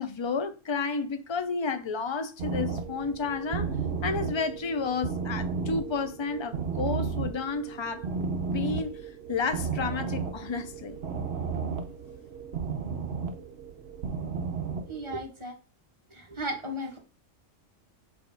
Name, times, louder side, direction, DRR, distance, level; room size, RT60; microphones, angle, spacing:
voice 1, 0.0-3.7 4.0-8.1 8.5-8.9 9.3-11.0, left 4 dB, 40° left, 0.4 m, -31 dB
sound 1, 2.4-15.1, right 5 dB, 55° right, 1.1 m, -33 dB
voice 2, 14.9-15.5 16.4-17.0, equal, 20° right, 1.6 m, -34 dB
5.2 x 4.4 x 5.4 m
omnidirectional pair, 1.3 m